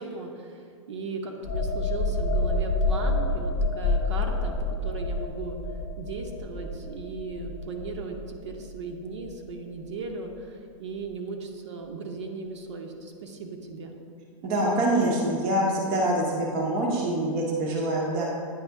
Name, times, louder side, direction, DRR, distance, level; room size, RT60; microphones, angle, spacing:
voice 1, 0.0-5.6 6.0-14.0, right 4 dB, 60° right, 3 dB, 0.8 m, -37 dB
sound 1, 1.4-8.9 9.2-9.4, left 2 dB, 30° left, 0.7 m, -28 dB
voice 2, 14.4-18.2, right 1 dB, 20° right, -2 dB, 0.6 m, -25 dB
9.4 x 3.2 x 4.6 m, 2.3 s
hypercardioid pair, 175°, 17 cm